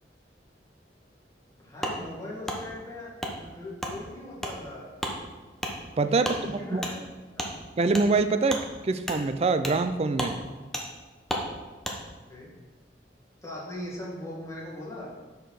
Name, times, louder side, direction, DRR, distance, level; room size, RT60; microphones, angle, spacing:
voice 1, 1.5-4.9 6.1-7.0 7.4-7.5 12.2-12.5 13.4-15.1, left 1 dB, 20° left, -5 dB, 2.0 m, -40 dB
Wood, 1.8-2.0 2.5-2.6 3.2-3.3 3.8-3.9 4.4-4.5 5.0-5.2 5.6-5.7 6.2-6.4 6.8-6.9 7.4-7.5 7.9-8.1 8.5-8.6 9.0-9.2 9.6-9.8 10.1-10.3 10.7-10.9 11.3-11.5 11.8-12.0, equal, 5° left, 1.0 m, -32 dB
voice 2, 6.0-6.4 6.7-6.8 7.8-10.4, right 3 dB, 35° right, 10 dB, 0.4 m, -25 dB
6.7 x 5.2 x 5.8 m, 1.2 s
head